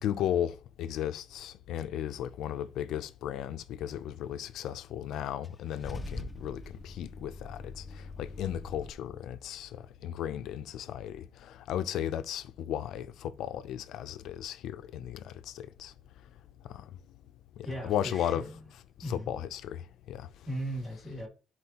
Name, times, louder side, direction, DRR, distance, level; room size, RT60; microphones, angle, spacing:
voice 1, 0.0-7.8 8.2-9.7 10.0-15.9 17.6-18.5 19.0-19.8 20.1-20.3, left 10 dB, 80° left, 0.5 m, -35 dB
Car / Engine starting / Idling, 5.4-8.9, left 2 dB, 15° left, 0.5 m, -43 dB
voice 2, 17.6-18.4 19.0-19.3 20.5-21.3, equal, 15° right, 2.2 m, -37 dB
10.0 x 4.2 x 2.9 m
cardioid pair, 160°, 0 cm